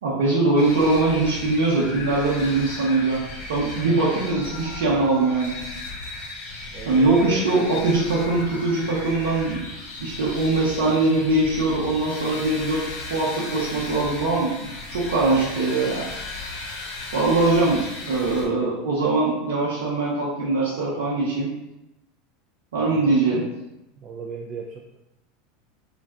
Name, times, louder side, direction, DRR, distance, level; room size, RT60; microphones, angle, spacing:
voice 1, 0.0-3.2 3.5-5.5 6.9-9.6 10.0-12.8 13.1-16.1 17.1-21.5 22.7-23.4, right 2 dB, 85° right, -6 dB, 0.7 m, -22 dB
sound 1, 0.6-18.5, left 2 dB, 65° left, 0.7 m, -36 dB
voice 2, 6.7-7.4 7.7-7.9 22.8-23.2 24.0-25.0, right 5 dB, 40° right, 1 dB, 0.3 m, -36 dB
2.4 x 2.2 x 3.5 m, 0.92 s
supercardioid pair, 110°, 0 cm